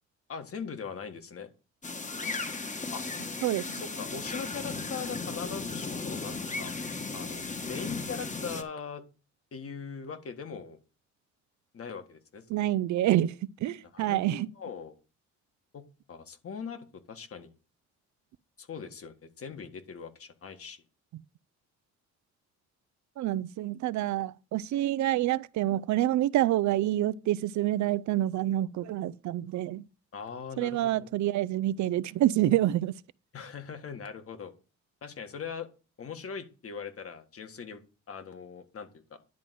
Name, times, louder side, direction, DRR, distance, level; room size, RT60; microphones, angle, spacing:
voice 1, 0.3-1.5 2.9-3.0 3.7-6.7 7.1-9.0 9.5-10.8 11.7-12.4 13.9-14.9 15.7-17.5 18.6-20.8 30.1-31.1 33.3-34.5 35.0-35.7 36.0-37.8 38.1-39.2, left 6 dB, 50° left, 1.8 m, -41 dB
sound 1, 1.8-8.6, left 3 dB, 25° left, 1.3 m, -36 dB
voice 2, 3.4-3.7 12.5-14.5 21.1-21.2 23.2-29.9 30.6-32.9, right 14 dB, 70° right, 0.5 m, -27 dB
10.5 x 3.9 x 7.6 m
cardioid pair, 90°, 30 cm